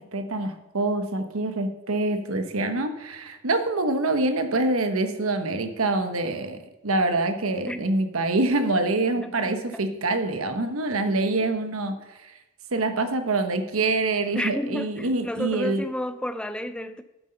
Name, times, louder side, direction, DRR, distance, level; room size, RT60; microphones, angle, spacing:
voice 1, 0.0-12.0 12.2-12.4 12.7-15.8, right 2 dB, 80° right, 1.1 m, -25 dB
voice 2, 9.2-9.8 11.4-11.5 14.3-17.0, left 1 dB, 5° left, 0.5 m, -31 dB
9.2 x 8.0 x 5.6 m
head